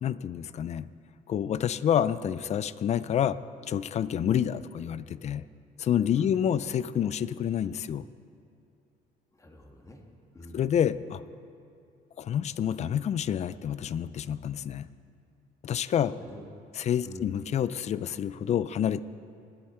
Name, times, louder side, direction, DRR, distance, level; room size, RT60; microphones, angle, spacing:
voice 1, 0.0-0.9 1.3-3.4 3.7-5.5 5.8-8.1 10.5-11.2 12.2-14.9 15.6-16.1 16.7-19.0, left 9 dB, 40° left, 17 dB, 0.4 m, -28 dB
voice 2, 9.3-10.0 10.3-10.6 15.9-16.4 17.0-17.3, left 1 dB, 20° left, 2 dB, 1.6 m, -45 dB
20.0 x 10.0 x 4.5 m, 2.5 s
cardioid pair, 110°, 17 cm